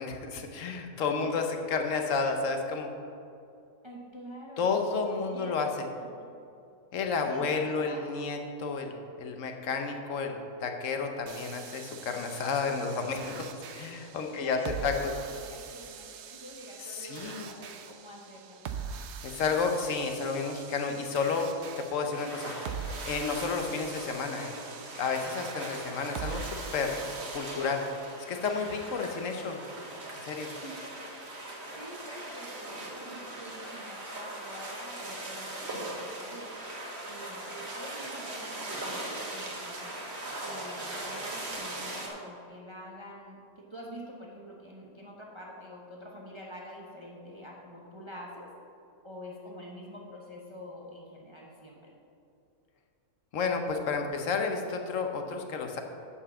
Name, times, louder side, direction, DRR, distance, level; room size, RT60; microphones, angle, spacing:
voice 1, 0.0-2.9 4.6-5.9 6.9-15.1 16.8-17.5 19.2-21.5 21.8-22.5 23.1-24.6 25.0-27.0 27.3-27.8 28.3-29.6 30.2-30.5 53.3-55.8, left 4 dB, 60° left, 4 dB, 1.1 m, -31 dB
voice 2, 3.8-4.8 5.3-5.6 6.2-6.3 7.2-8.1 14.3-18.6 30.6-30.9 31.4-36.5 37.0-40.0 40.4-48.5 49.0-51.9, equal, 25° right, -3 dB, 0.8 m, -46 dB
sound 1, 11.3-27.4, right 6 dB, 65° right, 0.7 m, -43 dB
sound 2, 22.1-42.1, right 1 dB, 45° right, 1.5 m, -40 dB
7.3 x 5.6 x 6.9 m, 2.5 s
omnidirectional pair, 1.6 m